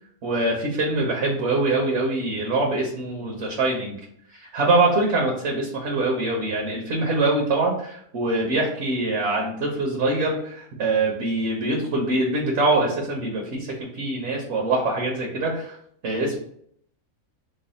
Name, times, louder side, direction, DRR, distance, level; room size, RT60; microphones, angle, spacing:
voice 1, 0.2-4.0 4.3-15.8 16.0-16.4, right 2 dB, 60° right, -1 dB, 1.0 m, -24 dB
3.1 x 2.2 x 3.9 m, 0.67 s
omnidirectional pair, 1.5 m